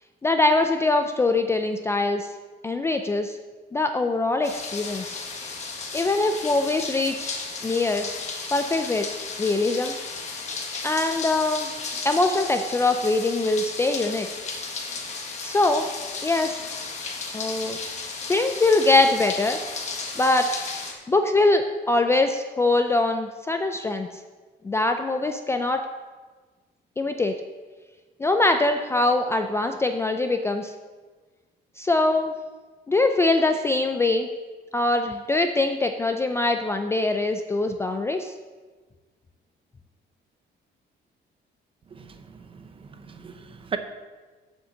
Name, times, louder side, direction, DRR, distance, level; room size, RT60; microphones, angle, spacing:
voice 1, 0.2-2.3 2.6-3.4 3.7-5.2 5.9-7.3 7.6-8.1 8.5-9.1 9.4-9.9 10.8-11.7 12.0-14.3 15.4-15.9 16.2-16.6 17.3-17.8 18.3-19.6 20.2-20.5 21.1-24.1 24.6-25.8 27.0-27.4 28.2-30.7 31.8-32.3 32.9-34.3 34.7-38.3, left 2 dB, 15° left, 6 dB, 0.3 m, -23 dB
sound 1, 4.4-20.9, left 4 dB, 35° left, 1.3 m, -34 dB
voice 2, 42.5-43.8, right 6 dB, 30° right, 8 dB, 0.7 m, -36 dB
7.1 x 6.4 x 7.5 m, 1.3 s
cardioid pair, 175°, 19 cm